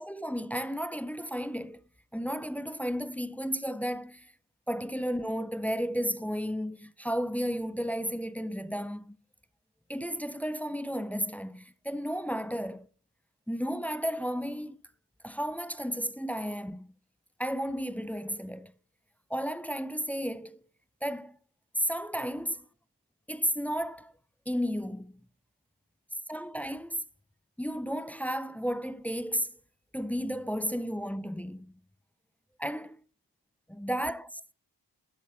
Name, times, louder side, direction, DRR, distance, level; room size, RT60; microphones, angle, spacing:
voice 1, 0.0-1.8 2.1-4.3 4.7-9.2 9.9-12.9 13.5-14.8 15.2-16.9 17.4-18.7 19.3-20.6 21.0-21.4 21.8-22.6 23.3-24.1 24.5-25.2 26.3-27.0 27.6-29.5 29.9-31.7 32.6-33.0 33.7-34.4, equal, 5° left, 0.5 m, -33 dB
12.0 x 7.2 x 3.6 m
cardioid pair, 55°, 42 cm